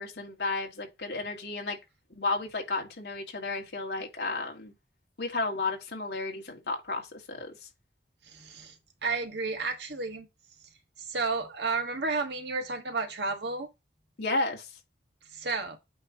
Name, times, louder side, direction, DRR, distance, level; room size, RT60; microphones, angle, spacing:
voice 1, 0.0-1.8 2.2-4.7 5.2-7.5 14.2-14.7, left 3 dB, 70° left, 2.1 m, -32 dB
voice 2, 8.2-8.8 9.0-10.3 11.0-13.7 15.3-15.8, right 3 dB, 70° right, 1.5 m, -32 dB
8.7 x 3.2 x 4.9 m
head